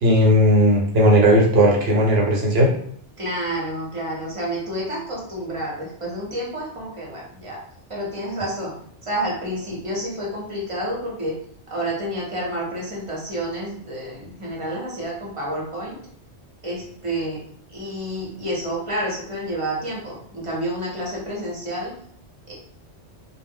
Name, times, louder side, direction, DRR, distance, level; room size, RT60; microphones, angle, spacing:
voice 1, 0.0-2.7, equal, 65° right, -1 dB, 0.9 m, -16 dB
voice 2, 3.2-7.6 7.9-8.7 9.0-11.4 11.7-16.0 16.6-17.4 17.7-21.9 22.5-22.6, right 1 dB, 30° right, -4 dB, 0.7 m, -29 dB
2.1 x 2.0 x 3.5 m, 0.63 s
omnidirectional pair, 1.2 m